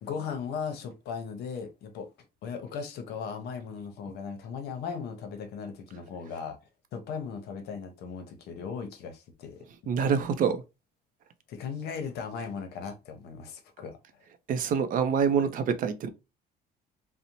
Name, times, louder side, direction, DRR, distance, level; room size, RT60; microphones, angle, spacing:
voice 1, 0.0-2.1 2.4-6.6 6.9-9.6 11.5-14.0, left 6 dB, 70° left, 0.7 m, -37 dB
voice 2, 9.9-10.6 14.5-16.1, right 6 dB, 55° right, 0.4 m, -26 dB
2.6 x 2.0 x 2.8 m
cardioid pair, 110°, 17 cm